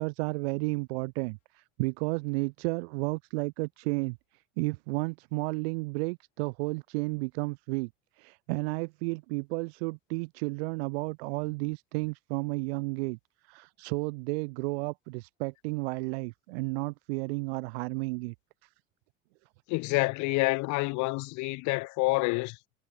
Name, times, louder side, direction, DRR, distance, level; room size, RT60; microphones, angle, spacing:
voice 1, 0.0-7.9 8.2-13.2 13.4-18.3 18.6-18.7, right 28 dB, 75° right, 1.3 m, -32 dB
voice 2, 19.7-22.6, left 25 dB, 65° left, 2.6 m, -28 dB
hypercardioid pair, 85°, 32 cm